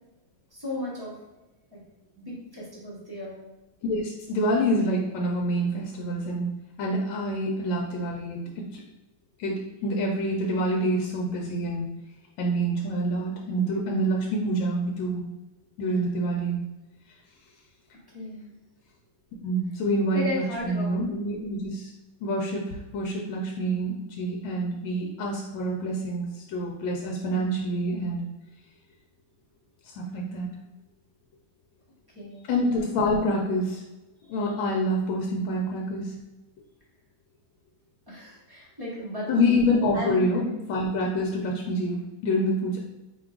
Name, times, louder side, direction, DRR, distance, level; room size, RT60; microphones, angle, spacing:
voice 1, 0.5-1.1 1.7-1.8 2.2-3.4 18.1-18.6 20.1-20.9 32.1-32.5 38.1-39.3 39.9-40.5, left 2 dB, 25° right, -7 dB, 0.5 m, -35 dB
voice 2, 3.8-6.5 6.8-8.8 9.4-11.8 12.4-15.2 15.8-16.6 19.4-21.9 22.2-28.2 30.0-30.5 32.5-33.8 34.3-36.2 39.3-42.8, equal, 75° left, -1 dB, 1.3 m, -27 dB
4.7 x 2.3 x 3.7 m, 1.0 s
omnidirectional pair, 2.3 m